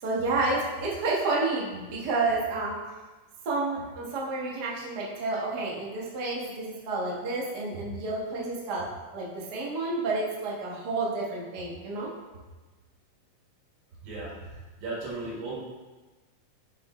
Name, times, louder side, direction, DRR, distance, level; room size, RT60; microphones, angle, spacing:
voice 1, 0.0-2.8 3.4-12.1, right 3 dB, 55° right, -4 dB, 1.1 m, -30 dB
voice 2, 14.8-15.5, right 2 dB, 80° right, -5 dB, 3.7 m, -35 dB
7.5 x 6.7 x 3.1 m, 1.2 s
omnidirectional pair, 4.0 m